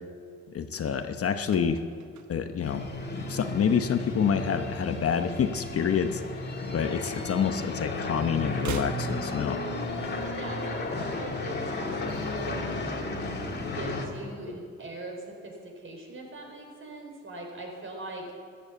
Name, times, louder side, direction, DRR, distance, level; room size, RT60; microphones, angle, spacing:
voice 1, 0.5-1.8 2.3-2.8 3.3-9.6, left 7 dB, 50° left, 8 dB, 1.0 m, -27 dB
sound 1, 1.4-3.8 4.1-4.4 4.6-6.1 6.4-7.7 8.0-10.1 10.4-10.5, right 6 dB, 70° right, 1.3 m, -43 dB
sound 2, 2.6-14.1, left 2 dB, 35° left, 2.4 m, -34 dB
voice 2, 10.4-12.8 13.5-18.2, right 2 dB, 45° right, 0 dB, 4.9 m, -41 dB
14.0 x 12.0 x 8.4 m, 2.2 s
cardioid pair, 90°, 30 cm